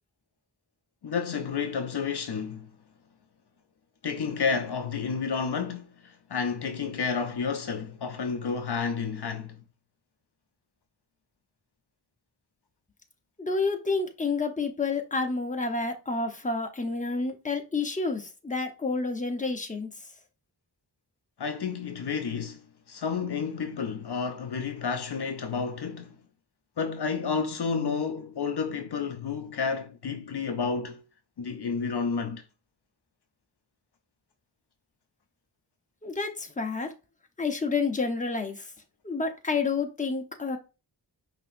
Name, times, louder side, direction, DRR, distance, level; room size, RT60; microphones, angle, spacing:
voice 1, 1.0-2.7 4.0-9.6 21.4-26.2 26.8-31.0 31.4-32.4, left 5 dB, 65° left, 0.7 m, -31 dB
voice 2, 13.4-19.9 36.0-36.9 37.4-38.7 39.0-40.6, left 4 dB, 15° left, 0.9 m, -29 dB
5.5 x 2.9 x 2.6 m
cardioid pair, 40°, 44 cm